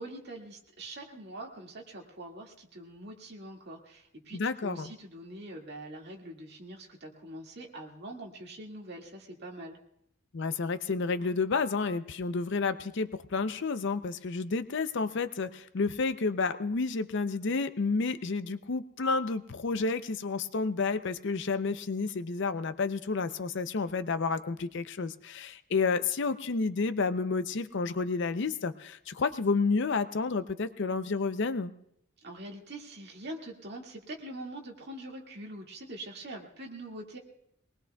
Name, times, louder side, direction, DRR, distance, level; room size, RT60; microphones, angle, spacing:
voice 1, 0.0-9.8 32.2-37.2, right 1 dB, 50° right, 0 dB, 2.0 m, -44 dB
voice 2, 4.3-4.9 10.3-31.7, left 4 dB, 55° left, 12 dB, 0.5 m, -30 dB
23.0 x 19.5 x 2.3 m, 0.73 s
head